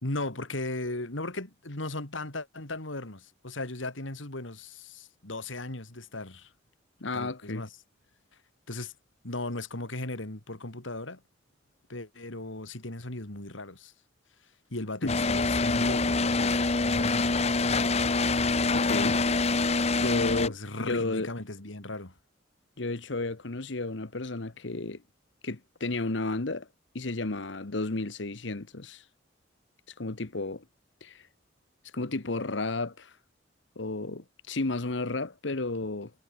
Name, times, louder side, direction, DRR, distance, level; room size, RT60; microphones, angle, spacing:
voice 1, 0.0-6.5 7.1-7.7 8.7-8.9 9.2-11.2 11.9-13.9 14.7-17.5 20.5-22.1, left 2 dB, 90° left, 3.4 m, -37 dB
voice 2, 7.0-7.6 15.0-15.1 18.7-19.2 20.0-21.3 22.8-25.0 25.4-26.7 26.9-29.0 30.0-30.6 31.0-31.2 31.9-33.1 33.8-36.1, left 2 dB, 70° left, 1.2 m, -32 dB
sound 1, 15.1-20.5, left 3 dB, 35° left, 1.1 m, -25 dB
head